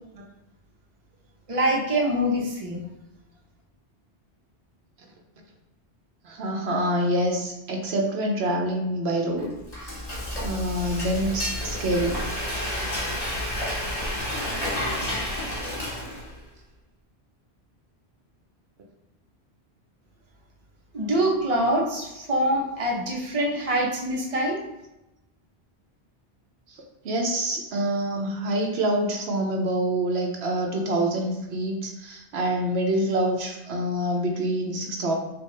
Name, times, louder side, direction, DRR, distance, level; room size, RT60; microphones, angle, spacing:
voice 1, 1.5-2.9 20.9-24.6, right 1 dB, 35° right, -2 dB, 0.9 m, -24 dB
voice 2, 6.2-9.5 9.8-9.9 10.4-12.2 27.0-35.2, right 1 dB, 75° right, 1 dB, 1.0 m, -26 dB
Frying (food), 9.4-16.5, left 1 dB, 35° left, 1.6 m, -30 dB
6.5 x 2.4 x 3.2 m, 0.93 s
omnidirectional pair, 1.1 m